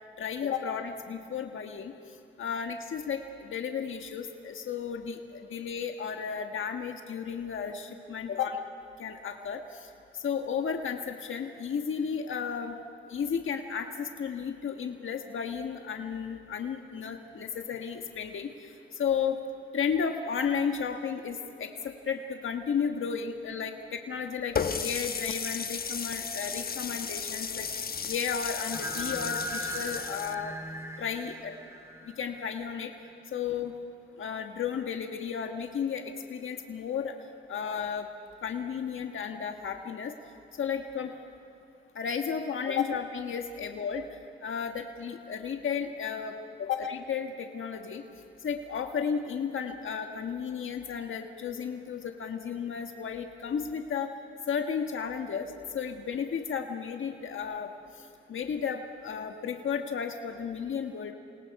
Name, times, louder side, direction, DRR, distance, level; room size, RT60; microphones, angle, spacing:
voice 1, 0.2-1.9 2.4-8.6 9.0-12.8 13.1-19.4 19.7-27.7 28.0-30.5 31.0-31.6 32.0-32.9 33.3-33.7 34.2-37.1 37.5-38.1 38.4-40.1 40.6-41.1 41.9-44.1 44.4-48.0 48.4-54.1 54.5-57.7 58.0-61.1, left 7 dB, 75° left, 4 dB, 1.4 m, -33 dB
Water tap faucet, 24.6-30.3, left 6 dB, 45° left, 1.0 m, -34 dB
sound 1, 28.7-32.7, left 1 dB, 15° right, 3.0 m, -38 dB
29.0 x 26.0 x 4.8 m, 2.8 s
cardioid pair, 95°, 21 cm